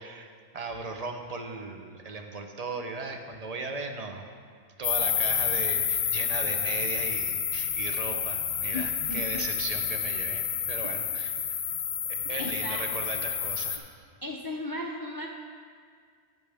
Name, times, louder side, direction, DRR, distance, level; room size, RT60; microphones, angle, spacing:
voice 1, 0.0-4.2 4.8-11.6 12.1-14.0, right 3 dB, 40° right, 4 dB, 0.6 m, -37 dB
sound 1, 4.8-13.8, left 8 dB, 75° left, 1.0 m, -29 dB
voice 2, 8.7-9.4 12.3-12.8 14.2-15.3, left 1 dB, 30° left, 0 dB, 0.4 m, -35 dB
10.5 x 9.3 x 3.4 m, 2.1 s
omnidirectional pair, 1.3 m